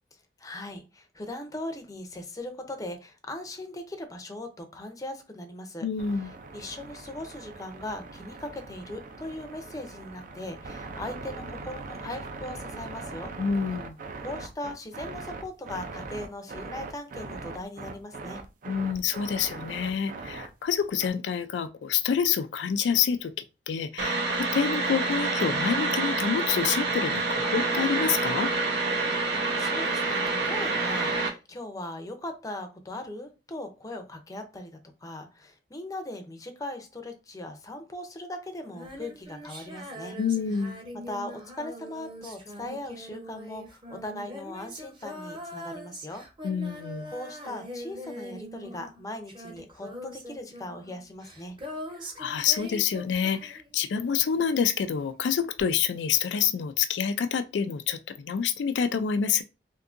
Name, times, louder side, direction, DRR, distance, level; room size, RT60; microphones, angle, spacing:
voice 1, 0.4-5.9 6.5-13.3 14.2-18.4 29.3-40.2 40.9-46.2 47.1-51.6, left 1 dB, 20° left, 0.6 m, -39 dB
voice 2, 5.8-6.3 13.4-14.0 18.7-23.3 23.7-28.5 40.2-40.8 46.4-47.1 52.2-59.4, left 7 dB, 85° left, 0.3 m, -27 dB
sound 1, 6.0-21.1, right 3 dB, 50° right, 0.5 m, -41 dB
sound 2, 24.0-31.3, right 3 dB, 80° right, 0.9 m, -27 dB
Female singing, 38.7-54.0 55.6-55.7, equal, 30° right, 0.8 m, -42 dB
3.6 x 2.7 x 2.5 m
head